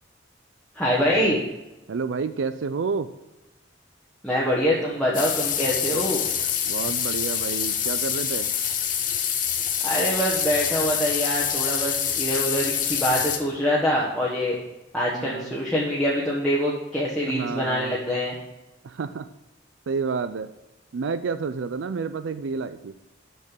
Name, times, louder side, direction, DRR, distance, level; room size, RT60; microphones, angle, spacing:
voice 1, 0.7-1.4 4.2-6.2 9.8-14.6 14.9-18.4, equal, 5° left, -6 dB, 1.2 m, -24 dB
voice 2, 1.9-3.1 6.6-8.5 15.1-15.5 17.3-18.0 18.8-19.3 19.9-20.5 20.9-22.9, right 5 dB, 75° right, 11 dB, 0.4 m, -29 dB
sound 1, 5.1-13.4, left 8 dB, 40° left, 0.9 m, -26 dB
6.7 x 6.6 x 7.4 m, 1.0 s
head